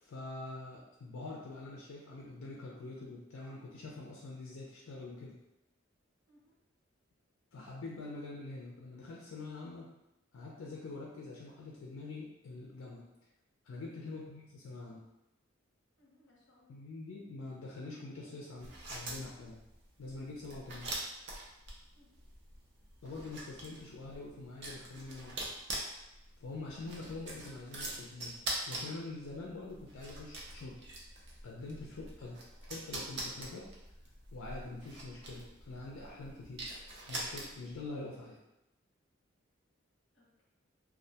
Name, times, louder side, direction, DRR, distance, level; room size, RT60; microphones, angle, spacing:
voice 1, 0.0-5.4 7.5-9.9 10.3-13.0 13.6-15.0 16.7-19.6 20.0-20.9 23.0-25.6 26.4-28.4 28.7-30.8 31.4-32.4 32.7-33.7 34.3-36.6 37.1-38.4, left 3 dB, 85° left, -4 dB, 0.4 m, -45 dB
voice 2, 16.0-16.8 21.9-22.2 32.2-32.3 40.1-40.4, left 2 dB, 60° left, -4 dB, 0.7 m, -67 dB
sound 1, 18.6-37.8, right 1 dB, 55° right, 0.5 m, -44 dB
2.3 x 2.1 x 2.7 m, 0.91 s
head